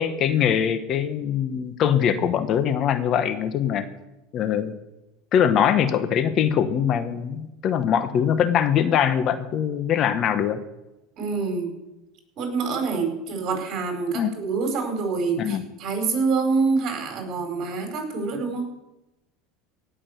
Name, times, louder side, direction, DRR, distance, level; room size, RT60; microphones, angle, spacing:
voice 1, 0.0-3.9 4.3-4.7 5.3-10.6 14.1-14.3 15.4-15.6, left 8 dB, 45° left, 11 dB, 1.1 m, -22 dB
voice 2, 11.2-11.7 12.4-18.7, right 4 dB, 45° right, 4 dB, 4.5 m, -26 dB
17.5 x 6.3 x 8.0 m, 0.96 s
supercardioid pair, 120°, 0 cm